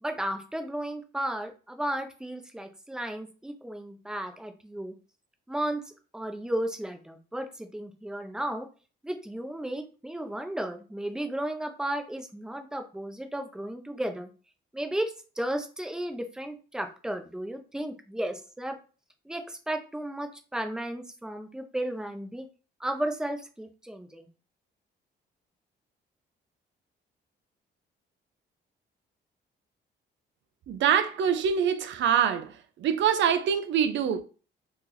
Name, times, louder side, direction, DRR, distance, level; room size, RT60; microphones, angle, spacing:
voice 1, 0.0-4.9 5.5-5.8 6.1-8.7 9.0-14.3 14.7-18.8 19.3-22.5 22.8-24.3, right 1 dB, 5° right, 0.6 m, -34 dB
voice 2, 30.7-32.5 32.8-34.2, right 8 dB, 70° right, 0.5 m, -24 dB
3.0 x 2.5 x 3.8 m
cardioid pair, 90°, 20 cm